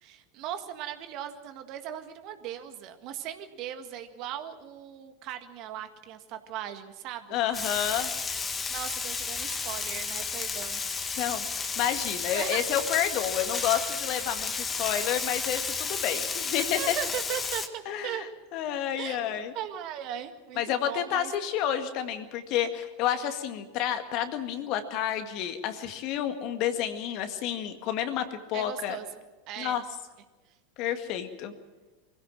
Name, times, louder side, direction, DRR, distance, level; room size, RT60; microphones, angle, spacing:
voice 1, 0.0-7.4 8.7-10.8 12.3-12.6 16.8-18.3 19.0-21.3 28.5-29.1 29.5-29.8, right 10 dB, 50° right, 7 dB, 1.8 m, -38 dB
voice 2, 7.3-8.1 11.2-17.0 17.9-18.3 18.5-19.5 20.6-29.0 29.6-29.8 30.8-31.5, left 10 dB, 50° left, 7 dB, 1.9 m, -30 dB
Frying (food), 7.5-17.7, left 5 dB, 20° left, 1.7 m, -32 dB
23.5 x 16.0 x 7.6 m, 1.2 s
figure-of-eight pair, 90°, 0 cm